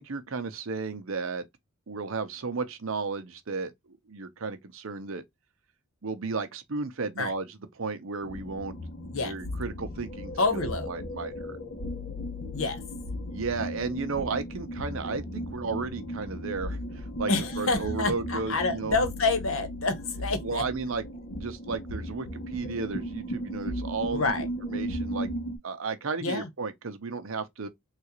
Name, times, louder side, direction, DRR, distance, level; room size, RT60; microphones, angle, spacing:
voice 1, 0.0-1.4 1.9-5.2 6.0-8.7 9.1-11.6 13.3-17.3 17.6-19.0 20.4-21.0 21.3-24.2 24.7-25.3 25.6-27.7, right 4 dB, 65° right, 0.7 m, -34 dB
sound 1, 8.2-25.6, equal, 40° left, 0.6 m, -36 dB
voice 2, 10.4-10.9 12.5-12.8 17.3-20.6 24.1-24.5 26.2-26.5, left 3 dB, 65° left, 1.0 m, -28 dB
3.7 x 2.4 x 2.9 m
head